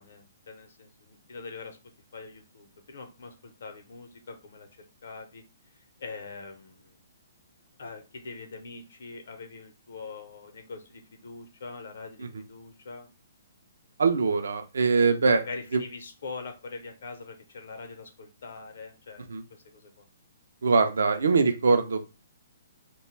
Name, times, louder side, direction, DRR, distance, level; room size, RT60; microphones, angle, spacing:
voice 1, 0.0-1.8 2.1-4.7 5.0-5.4 6.0-7.0 7.8-13.1 15.5-19.3 19.7-20.0, left 4 dB, 70° left, 5 dB, 0.6 m, -43 dB
voice 2, 14.0-15.4 15.7-15.8 19.3-19.4 20.6-22.1, right 4 dB, 80° right, 7 dB, 0.4 m, -23 dB
2.2 x 2.1 x 3.0 m, 0.30 s
hypercardioid pair, 145°, 0 cm